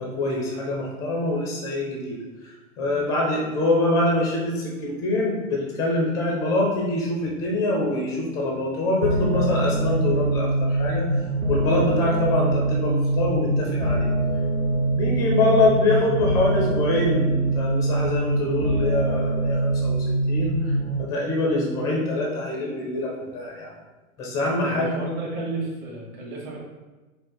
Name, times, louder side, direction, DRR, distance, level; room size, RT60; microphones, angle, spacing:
voice 1, 0.0-11.1 11.5-14.1 14.7-23.7 24.2-25.0, left 2 dB, 10° left, -2 dB, 0.4 m, -25 dB
sound 1, 9.0-21.0, right 2 dB, 90° right, 0.8 m, -23 dB
voice 2, 24.6-26.6, right 2 dB, 35° right, -3 dB, 1.4 m, -32 dB
4.9 x 2.5 x 3.9 m, 1.2 s
figure-of-eight pair, 110°, 43 cm